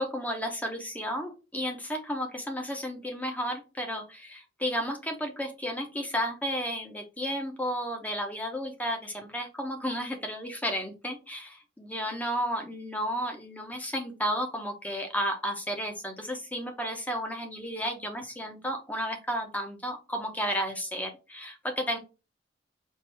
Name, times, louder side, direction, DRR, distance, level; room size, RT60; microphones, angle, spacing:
voice 1, 0.0-22.0, equal, 10° left, 4 dB, 0.7 m, -33 dB
4.5 x 2.6 x 3.2 m, 0.30 s
head